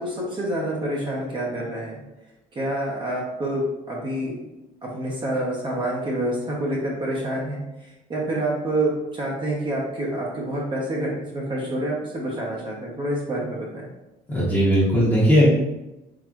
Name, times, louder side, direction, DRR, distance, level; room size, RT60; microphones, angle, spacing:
voice 1, 0.0-2.0 2.5-4.4 4.8-7.6 8.1-13.9, right 1 dB, 30° right, -4 dB, 1.0 m, -27 dB
voice 2, 14.3-15.5, equal, 15° left, -8 dB, 1.1 m, -18 dB
3.9 x 3.2 x 3.1 m, 0.97 s
cardioid pair, 110°, 17 cm